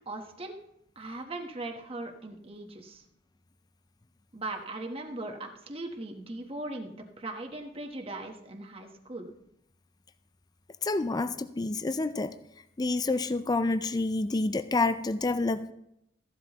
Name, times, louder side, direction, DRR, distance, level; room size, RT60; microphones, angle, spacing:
voice 1, 0.1-0.6 1.0-3.0 4.3-9.3, right 2 dB, 30° right, 2 dB, 1.1 m, -39 dB
voice 2, 10.8-12.3 12.8-15.7, left 3 dB, 20° left, 10 dB, 0.4 m, -28 dB
15.0 x 12.0 x 3.0 m, 0.78 s
head